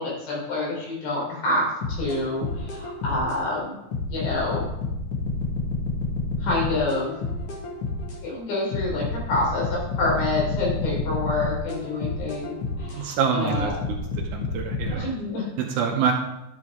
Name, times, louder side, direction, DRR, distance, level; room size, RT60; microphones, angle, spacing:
voice 1, 0.0-3.8 4.1-4.7 6.4-7.1 8.2-13.7 14.9-15.5, left 2 dB, 85° left, -4 dB, 5.6 m, -27 dB
sound 1, 1.8-3.4 3.9-8.2 8.7-13.0 13.5-14.9, left 3 dB, 45° left, 2.3 m, -29 dB
voice 2, 13.0-14.0 14.3-15.1 15.6-16.1, right 7 dB, 85° right, 3 dB, 1.7 m, -26 dB
11.0 x 7.9 x 3.7 m, 0.89 s
omnidirectional pair, 4.5 m